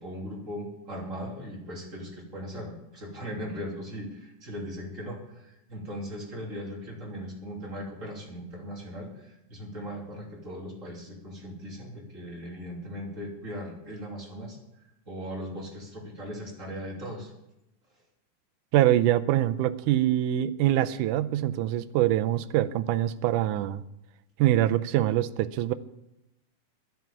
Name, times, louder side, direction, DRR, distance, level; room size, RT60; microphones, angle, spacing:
voice 1, 0.0-14.6 15.1-17.3, equal, 25° right, -2 dB, 3.1 m, -38 dB
voice 2, 18.7-23.8 24.4-25.7, right 13 dB, 80° right, 11 dB, 2.1 m, -24 dB
11.0 x 11.0 x 7.1 m, 0.88 s
omnidirectional pair, 3.7 m